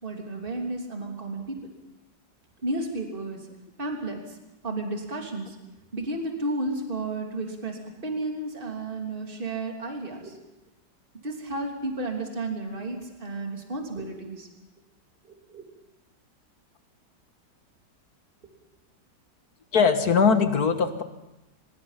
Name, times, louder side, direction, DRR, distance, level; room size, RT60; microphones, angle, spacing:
voice 1, 0.0-1.6 2.6-3.4 3.8-4.2 4.6-5.5 5.9-10.3 11.2-14.5 15.5-15.6, right 2 dB, 30° right, 1 dB, 3.1 m, -32 dB
voice 2, 19.7-21.0, left 5 dB, 55° left, 8 dB, 1.8 m, -21 dB
24.0 x 21.5 x 5.8 m, 0.96 s
omnidirectional pair, 2.0 m